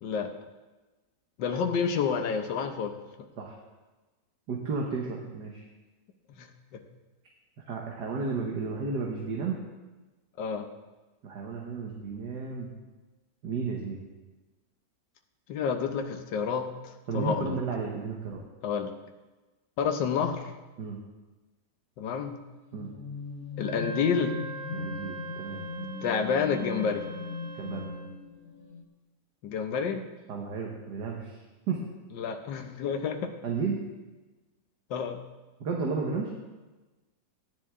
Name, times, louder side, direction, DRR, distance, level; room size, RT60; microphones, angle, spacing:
voice 1, 0.0-0.3 1.4-2.9 6.3-6.5 10.4-10.7 15.5-17.6 18.6-18.9 19.8-20.5 22.0-22.4 23.6-24.3 26.0-27.0 29.4-30.1 32.2-33.3 34.9-35.2, left 6 dB, 90° left, 5 dB, 1.6 m, -29 dB
voice 2, 4.5-5.6 7.7-9.6 11.2-12.7 13.4-14.0 17.1-18.4 20.8-21.0 22.7-22.9 24.7-25.6 27.5-27.9 30.3-31.4 31.7-31.8 33.4-33.8 35.6-36.3, right 4 dB, 70° right, -1 dB, 1.8 m, -33 dB
sound 1, 22.3-28.8, left 4 dB, 65° left, 1.6 m, -39 dB
Wind instrument woodwind instrument, 23.5-28.0, right 3 dB, 50° right, 3.5 m, -42 dB
16.5 x 10.5 x 3.6 m, 1.2 s
omnidirectional pair, 1.9 m